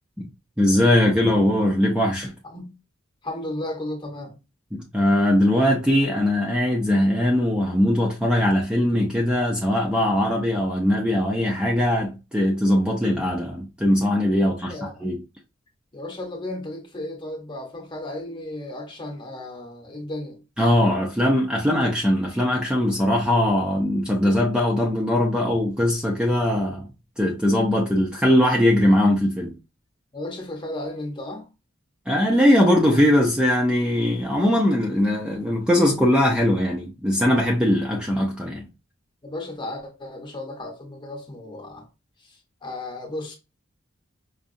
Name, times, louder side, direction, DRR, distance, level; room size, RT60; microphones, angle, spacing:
voice 1, 0.6-2.3 4.7-15.2 20.6-26.9 27.2-29.5 32.1-38.7, left 1 dB, 5° right, 0.6 m, -20 dB
voice 2, 3.2-4.3 14.4-15.0 15.9-20.4 30.1-31.5 39.2-41.8 42.2-43.3, left 1 dB, 25° left, 1.0 m, -34 dB
5.1 x 2.3 x 2.6 m
head